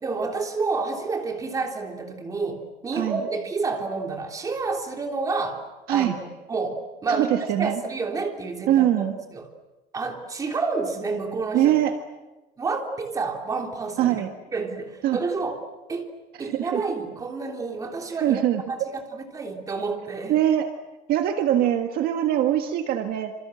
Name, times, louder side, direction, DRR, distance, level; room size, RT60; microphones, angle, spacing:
voice 1, 0.0-5.6 5.9-9.5 9.9-11.7 12.6-14.2 14.5-15.6 15.9-18.4 18.7-20.4, right 4 dB, 15° right, 3 dB, 3.3 m, -29 dB
voice 2, 7.1-7.8 8.7-9.1 11.5-12.0 14.0-14.3 15.0-15.2 16.4-16.8 18.2-18.9 20.3-20.7 21.1-23.3, right 12 dB, 45° right, 6 dB, 1.7 m, -22 dB
28.5 x 27.0 x 7.8 m, 1.1 s
cardioid pair, 170°, 21 cm